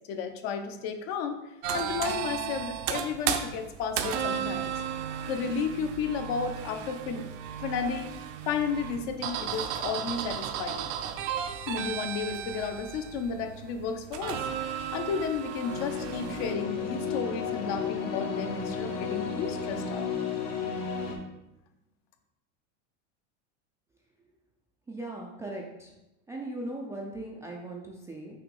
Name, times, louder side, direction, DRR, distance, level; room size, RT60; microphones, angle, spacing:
voice 1, 0.1-1.4 1.7-4.8 5.3-7.3 7.6-8.1 8.5-10.9 11.7-14.5 14.9-20.1, left 6 dB, 55° left, 7 dB, 0.7 m, -33 dB
sound 1, 1.6-16.5, right 8 dB, 50° right, 0.6 m, -34 dB
sound 2, 15.6-21.1, left 5 dB, 75° left, 1.6 m, -33 dB
voice 2, 24.9-25.9 26.3-28.4, right 1 dB, 10° right, -2 dB, 0.3 m, -38 dB
5.8 x 3.0 x 5.3 m, 0.94 s
supercardioid pair, 145°, 37 cm